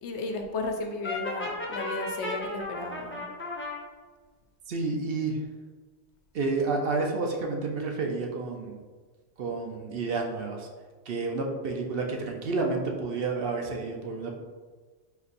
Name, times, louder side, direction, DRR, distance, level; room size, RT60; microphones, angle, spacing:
voice 1, 0.0-3.3, left 3 dB, 85° left, 4 dB, 0.9 m, -34 dB
Brass instrument, 1.0-3.8, left 2 dB, 15° left, 0.5 m, -34 dB
voice 2, 4.7-5.4 6.3-8.8 9.4-10.7 11.1-14.3, right 3 dB, 60° right, 1 dB, 0.8 m, -30 dB
4.5 x 4.0 x 2.5 m, 1.4 s
omnidirectional pair, 1.1 m